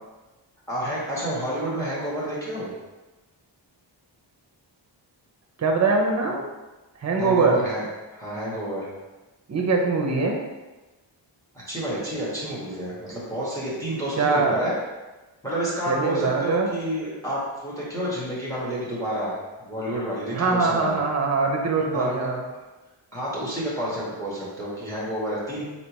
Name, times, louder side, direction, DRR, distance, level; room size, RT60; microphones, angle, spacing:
voice 1, 0.7-2.7 7.2-7.8 8.1-8.9 11.7-14.7 15.4-21.0 21.9-22.1 23.1-25.6, right 1 dB, 5° left, -7 dB, 1.2 m, -29 dB
voice 2, 5.6-6.5 7.0-7.6 9.5-10.4 14.2-14.6 15.9-16.8 20.3-22.4, right 3 dB, 35° right, 1 dB, 0.6 m, -22 dB
4.0 x 3.2 x 3.0 m, 1.1 s
wide cardioid pair, 125°, 46 cm